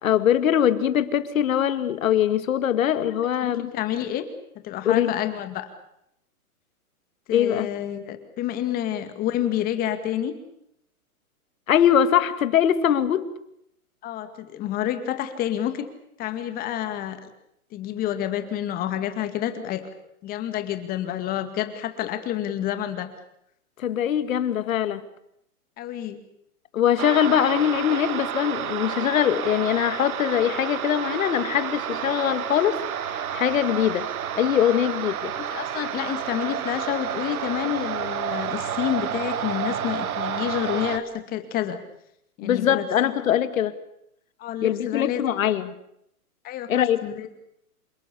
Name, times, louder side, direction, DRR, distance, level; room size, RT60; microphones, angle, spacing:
voice 1, 0.0-3.7 4.8-5.1 7.3-7.7 11.7-13.3 23.8-25.0 26.7-32.8 33.1-34.1 34.4-35.4 42.4-43.7 44.6-45.7 46.7-47.0, left 10 dB, 60° left, 2.2 m, -22 dB
voice 2, 3.4-4.3 4.6-5.7 7.3-10.3 14.0-15.9 16.2-17.2 17.7-19.8 20.2-23.1 25.8-26.2 35.3-41.8 42.4-42.9 43.2-43.4 44.4-45.2 46.4-47.3, left 11 dB, 20° left, 2.1 m, -29 dB
sound 1, 27.0-41.0, right 9 dB, 70° right, 1.8 m, -30 dB
28.0 x 18.5 x 8.4 m
hypercardioid pair, 160°, 45 cm